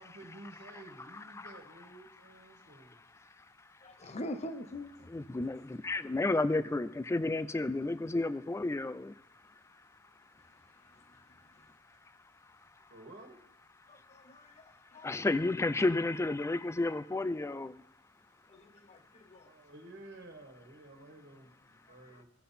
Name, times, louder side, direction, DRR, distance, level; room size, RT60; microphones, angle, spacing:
voice 1, 0.0-3.0 12.8-13.4 19.4-22.2, right 2 dB, 55° right, 1.7 m, -52 dB
voice 2, 1.1-1.5 2.5-4.2 5.1-9.8 10.4-10.5 11.0-11.2 11.6-12.0 12.4-12.9 14.0-17.8, left 2 dB, 15° left, 0.3 m, -34 dB
voice 3, 3.8-5.1 13.9-14.6 14.9-15.1 18.5-19.5 22.0-22.2, left 1 dB, 35° left, 0.7 m, -44 dB
16.0 x 5.6 x 4.3 m
head